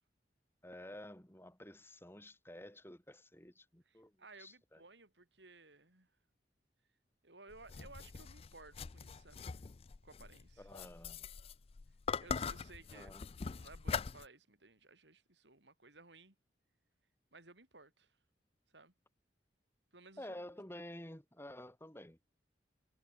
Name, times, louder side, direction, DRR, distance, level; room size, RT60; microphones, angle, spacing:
voice 1, 0.6-4.1 4.4-4.8 10.6-11.2 12.9-13.2 20.2-22.2, left 1 dB, 15° left, 3.6 m, -51 dB
voice 2, 3.8-6.1 7.2-9.6 10.0-10.7 12.2-16.4 17.3-18.2 18.7-18.9 19.9-20.4, right 3 dB, 90° right, 6.2 m, -58 dB
sound 1, 7.5-14.3, left 5 dB, 35° left, 0.4 m, -42 dB
head